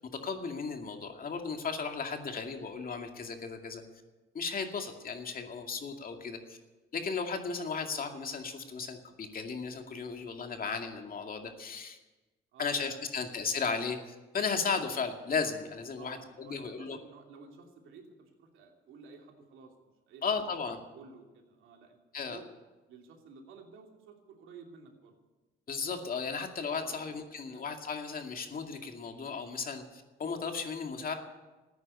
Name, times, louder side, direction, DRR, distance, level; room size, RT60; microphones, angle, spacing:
voice 1, 0.2-3.8 4.3-6.6 6.9-12.0 12.6-17.0 20.2-20.8 22.1-22.4 25.7-31.1, left 5 dB, 45° left, 4 dB, 2.3 m, -35 dB
voice 2, 12.5-13.2 16.0-20.2 20.9-22.0 22.3-22.5 22.9-25.1 26.8-27.1 27.5-27.7, right 5 dB, 85° right, 2 dB, 2.9 m, -53 dB
14.5 x 9.6 x 9.7 m, 1.2 s
cardioid pair, 90°, 20 cm